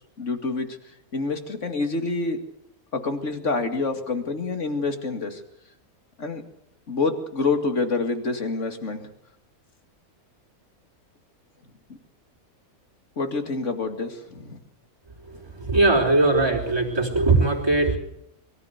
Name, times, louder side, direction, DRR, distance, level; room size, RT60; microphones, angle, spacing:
voice 1, 0.2-0.7 1.1-2.4 2.9-5.4 6.2-6.4 6.9-9.0 13.2-14.6, left 3 dB, 55° left, 6 dB, 2.6 m, -27 dB
voice 2, 15.6-18.0, right 2 dB, 15° right, -1 dB, 4.4 m, -20 dB
23.5 x 14.5 x 8.1 m, 0.75 s
omnidirectional pair, 1.5 m